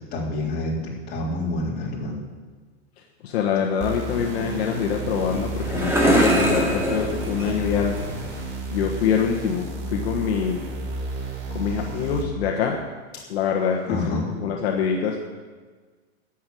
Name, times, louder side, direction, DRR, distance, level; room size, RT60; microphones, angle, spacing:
voice 1, 0.1-0.8 1.1-2.2 13.9-14.2, left 1 dB, 30° left, -4 dB, 3.7 m, -27 dB
voice 2, 3.2-8.0 8.7-10.7 11.5-12.8 13.3-15.2, left 7 dB, 60° left, 1 dB, 1.5 m, -25 dB
sound 1, 3.8-12.3, right 2 dB, 35° right, 1.9 m, -32 dB
sound 2, 4.9-8.5, equal, 5° right, 2.2 m, -24 dB
11.0 x 7.4 x 9.3 m, 1.4 s
supercardioid pair, 150°, 34 cm